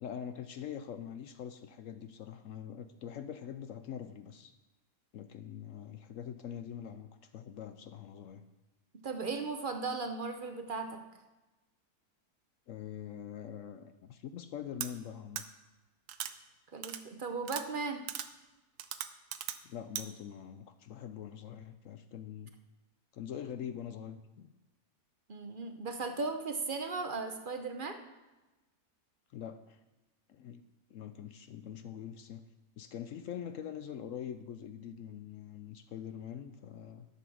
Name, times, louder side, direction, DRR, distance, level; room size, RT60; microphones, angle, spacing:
voice 1, 0.0-4.5 5.1-8.4 12.7-15.4 19.6-22.5 23.1-24.5 29.3-29.8 30.3-30.6 30.9-32.5 32.8-37.1, left 9 dB, 70° left, 10 dB, 0.8 m, -44 dB
voice 2, 9.0-11.0 16.7-18.0 25.3-28.0, right 4 dB, 45° right, 6 dB, 0.7 m, -37 dB
sound 1, 14.8-14.9 15.4-15.5 16.1-16.3 16.8-17.0 17.5-17.6 18.1-18.3 18.8-19.6 20.0-20.1, right 11 dB, 90° right, 1.2 m, -38 dB
11.0 x 7.0 x 6.1 m, 1.1 s
omnidirectional pair, 1.7 m